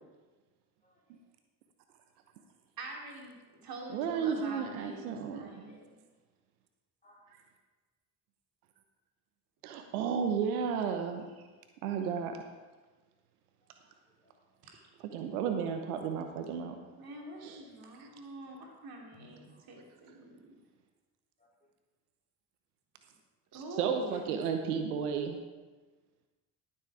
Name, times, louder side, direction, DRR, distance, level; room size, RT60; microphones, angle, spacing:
voice 1, 0.8-1.2 4.0-4.2 5.7-5.8 7.0-7.4 13.6-14.4 17.4-18.2 19.1-20.0 21.4-21.5 24.1-24.2, left 2 dB, 20° left, -2 dB, 3.7 m, -64 dB
voice 2, 2.8-3.3 3.6-6.0 14.6-14.8 17.0-20.5 23.5-24.3, right 2 dB, 55° right, -1 dB, 3.1 m, -45 dB
voice 3, 3.9-5.6 9.6-11.2 11.8-12.5 15.1-16.8 17.4-17.6 18.0-18.1 23.5-25.4, right 7 dB, 80° right, 5 dB, 1.0 m, -33 dB
12.5 x 7.5 x 4.8 m, 1.3 s
hypercardioid pair, 60°, 44 cm